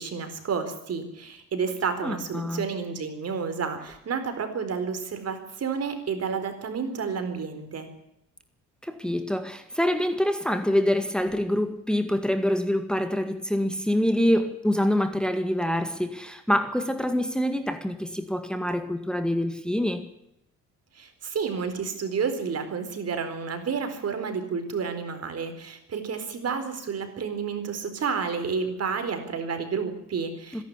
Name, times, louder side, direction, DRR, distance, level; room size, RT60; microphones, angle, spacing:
voice 1, 0.0-7.9 20.9-30.6, right 5 dB, 55° right, 4.3 m, -30 dB
voice 2, 2.0-2.7 8.8-20.1 30.5-30.6, equal, 5° left, 2.0 m, -26 dB
25.5 x 11.5 x 9.8 m
cardioid pair, 90°, 30 cm